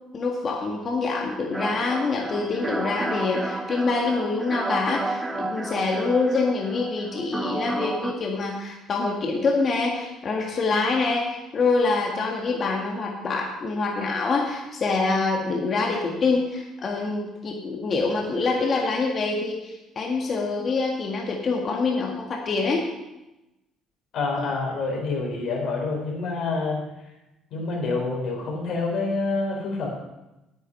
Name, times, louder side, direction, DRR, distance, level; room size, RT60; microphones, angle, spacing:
voice 1, 0.1-22.9 24.4-24.5, left 3 dB, 50° left, 0 dB, 1.8 m, -25 dB
sound 1, 1.5-8.1, right 2 dB, 15° right, 1.5 m, -31 dB
voice 2, 24.1-26.8 27.5-29.9, left 3 dB, 65° left, -1 dB, 4.2 m, -27 dB
9.4 x 9.2 x 5.5 m, 0.97 s
supercardioid pair, 70°, 0 cm